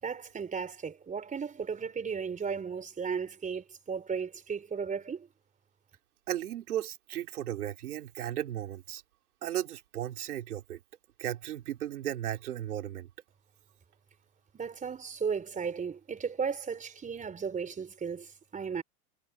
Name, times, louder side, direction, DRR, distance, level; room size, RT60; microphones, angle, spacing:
voice 1, 0.0-5.3 14.5-18.8, right 6 dB, 20° right, 4.4 m, -35 dB
voice 2, 6.3-9.0 9.4-10.8 11.2-13.1, right 12 dB, 85° right, 3.6 m, -35 dB
hypercardioid pair, 120°, 43 cm